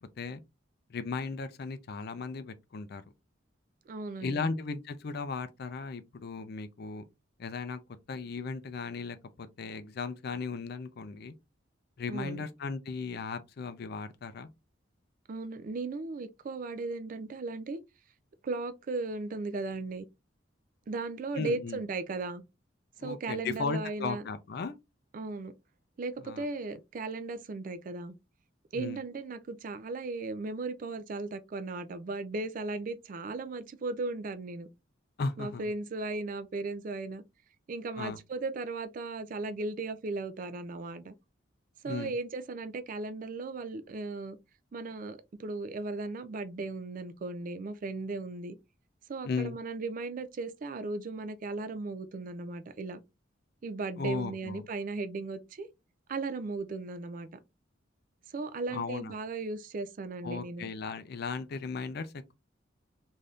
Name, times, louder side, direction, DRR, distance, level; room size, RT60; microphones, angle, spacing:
voice 1, 0.9-3.0 4.2-7.0 7.4-7.8 8.1-11.3 12.0-14.5 21.3-21.8 23.0-24.8 26.2-26.4 28.7-29.0 35.2-35.7 38.0-38.2 41.8-42.2 49.2-49.6 54.0-54.7 58.7-59.1 60.2-62.3, left 4 dB, 55° left, 0.4 m, -36 dB
voice 2, 3.9-4.5 12.1-12.4 15.3-17.8 18.4-20.0 20.9-22.4 23.0-24.2 25.1-25.5 26.0-28.1 28.7-34.7 35.4-37.2 37.7-41.1 41.8-44.4 44.7-48.6 49.1-53.0 53.6-55.7 56.1-57.3 58.3-60.7, right 3 dB, 45° right, 0.3 m, -36 dB
3.4 x 2.6 x 2.3 m
head